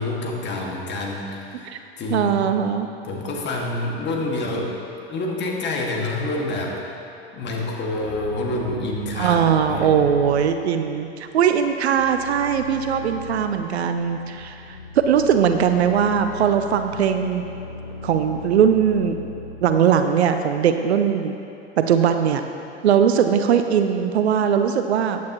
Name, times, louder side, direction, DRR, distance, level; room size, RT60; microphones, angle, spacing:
voice 1, 0.0-1.7 2.0-2.5 3.0-4.7 5.1-6.9 7.3-9.4 9.7-9.9, left 2 dB, 35° left, -1 dB, 2.0 m, -27 dB
voice 2, 2.1-2.9 9.2-17.4 18.0-19.2 19.6-21.3 21.8-22.4 22.8-25.2, right 8 dB, 80° right, 8 dB, 0.6 m, -20 dB
sound 1, 8.0-20.5, left 3 dB, 85° left, 2.4 m, -38 dB
14.5 x 9.2 x 3.0 m, 2.7 s
hypercardioid pair, 90°, 32 cm